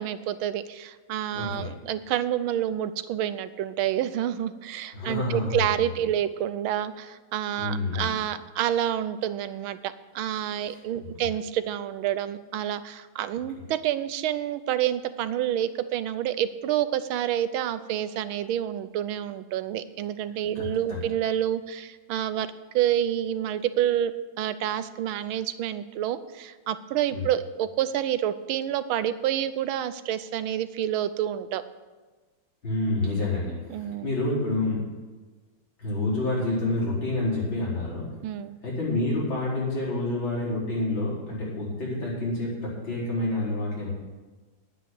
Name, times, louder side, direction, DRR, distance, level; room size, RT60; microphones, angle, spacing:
voice 1, 0.0-22.5 22.7-24.1 24.4-31.6 33.7-34.1 38.2-38.6, right 11 dB, 85° right, 13 dB, 1.5 m, -28 dB
voice 2, 1.3-1.7 4.9-5.9 7.6-8.1 10.6-10.8 11.1-11.2 20.6-21.0 27.1-27.2 32.6-34.9 35.8-38.1 38.6-43.9, left 2 dB, 70° left, -7 dB, 5.4 m, -28 dB
11.0 x 9.0 x 7.8 m, 1.3 s
omnidirectional pair, 2.2 m